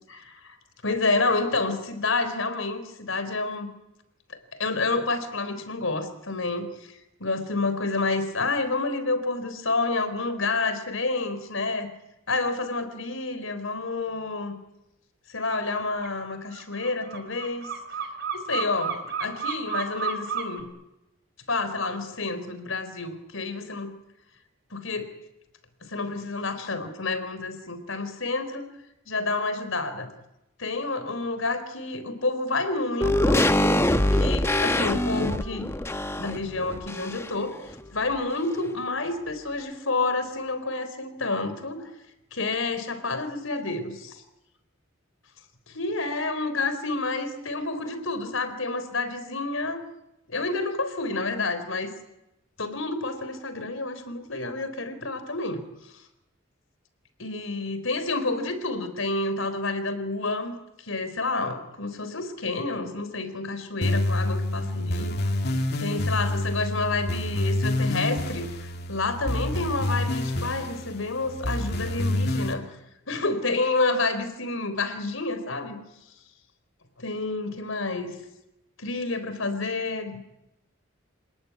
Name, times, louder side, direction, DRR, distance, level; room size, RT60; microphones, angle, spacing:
voice 1, 0.1-0.6 0.8-3.7 4.3-11.9 12.3-14.6 15.3-17.7 18.3-20.7 21.5-23.9 24.7-25.1 25.8-28.7 29.1-30.1 30.6-33.4 34.1-35.7 36.2-41.9 42.3-44.2 45.7-49.8 50.3-51.9 52.6-55.7 57.2-65.1 65.8-72.7 73.1-75.8 77.0-78.2 78.8-80.2, left 3 dB, 80° left, 10 dB, 3.9 m, -29 dB
sound 1, 15.5-15.6 15.9-20.6, right 7 dB, 55° right, 3.5 m, -32 dB
sound 2, 33.0-37.5 37.8-37.9, left 1 dB, 15° left, 1.0 m, -24 dB
sound 3, 63.8-72.5, left 1 dB, 55° left, 2.6 m, -28 dB
28.0 x 18.5 x 9.7 m, 0.90 s
head